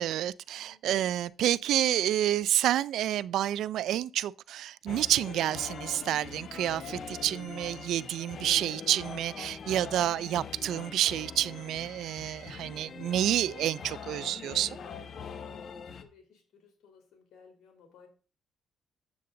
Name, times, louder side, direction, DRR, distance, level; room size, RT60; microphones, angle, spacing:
voice 1, 0.0-14.8, right 12 dB, 80° right, 0.3 m, -29 dB
sound 1, 4.9-16.0, left 6 dB, 55° left, 1.1 m, -43 dB
voice 2, 15.5-18.1, left 6 dB, 75° left, 3.3 m, -58 dB
8.4 x 7.6 x 3.8 m
cardioid pair, 90°, 0 cm